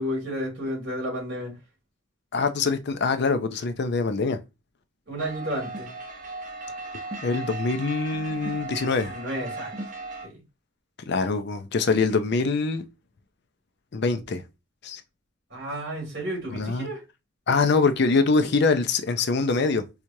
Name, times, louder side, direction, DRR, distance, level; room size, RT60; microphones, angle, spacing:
voice 1, 0.0-1.6 5.1-5.9 8.6-9.7 10.2-10.4 15.5-17.0, equal, 55° right, 2.4 m, -32 dB
voice 2, 2.3-4.4 7.2-9.1 11.1-12.8 13.9-14.4 14.8-15.0 16.5-16.9 17.5-19.9, left 4 dB, 55° left, 0.5 m, -24 dB
sound 1, 5.2-10.3, right 2 dB, 40° right, 0.9 m, -36 dB
4.5 x 2.4 x 2.7 m
head